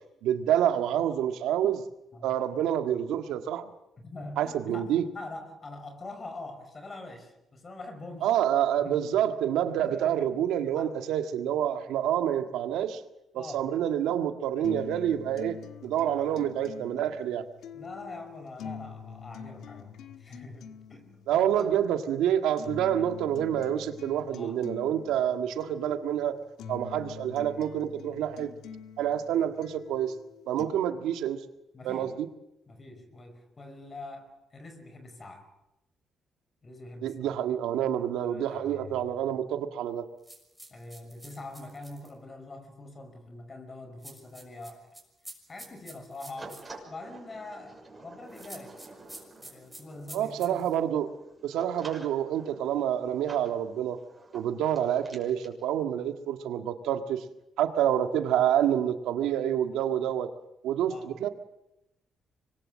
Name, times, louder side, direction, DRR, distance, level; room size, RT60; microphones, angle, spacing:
voice 1, 0.2-1.8 2.2-3.7 4.4-5.0 8.2-13.0 13.3-17.4 21.3-26.4 26.7-28.5 29.0-30.1 30.5-31.4 31.8-32.3 37.0-40.1 50.1-51.1 51.4-54.0 54.3-57.2 57.6-60.3 60.6-61.3, right 10 dB, 90° right, 7 dB, 1.7 m, -28 dB
voice 2, 4.0-8.3 8.8-9.0 9.6-10.3 10.7-11.0 13.3-13.7 17.7-21.8 24.3-24.7 31.7-32.1 32.7-35.5 36.6-37.3 38.2-39.1 40.7-44.9 45.5-48.8 49.4-50.7 60.9-61.2, left 2 dB, 35° left, 7 dB, 5.2 m, -44 dB
sound 1, 14.6-30.6, left 7 dB, 80° left, 1.4 m, -45 dB
sound 2, 40.2-42.1 44.0-46.7 48.3-50.8, right 1 dB, 5° right, 6.4 m, -48 dB
sound 3, 46.4-55.5, right 2 dB, 20° right, 6.6 m, -50 dB
25.0 x 21.0 x 7.6 m, 0.90 s
cardioid pair, 90°, 0 cm